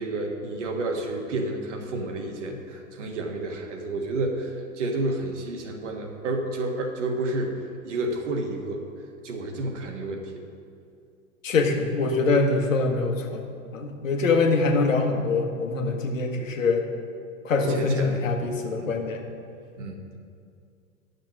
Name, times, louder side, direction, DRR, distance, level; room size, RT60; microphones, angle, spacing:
voice 1, 0.0-7.6 7.8-8.9 9.2-10.5 17.7-18.2 18.8-18.9 19.8-20.0, right 2 dB, 60° right, 3 dB, 1.5 m, -30 dB
voice 2, 11.4-13.5 13.7-16.9 17.4-19.2, left 3 dB, 70° left, 3 dB, 1.3 m, -24 dB
10.5 x 6.7 x 6.0 m, 2.4 s
figure-of-eight pair, 100°, 41 cm